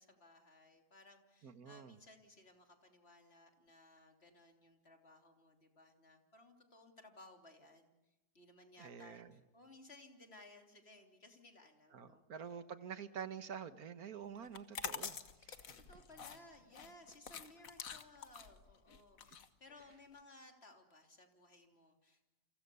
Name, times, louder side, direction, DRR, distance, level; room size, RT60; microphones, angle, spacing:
voice 1, 0.0-7.9 8.3-12.2 15.9-22.3, left 2 dB, 40° left, 4 dB, 3.4 m, -60 dB
voice 2, 1.4-2.0 8.8-9.4 11.9-15.8, right 7 dB, 65° right, 11 dB, 1.8 m, -48 dB
sound 1, 14.4-20.2, left 6 dB, 60° left, 1.6 m, -47 dB
29.5 x 27.0 x 7.0 m, 0.99 s
omnidirectional pair, 1.7 m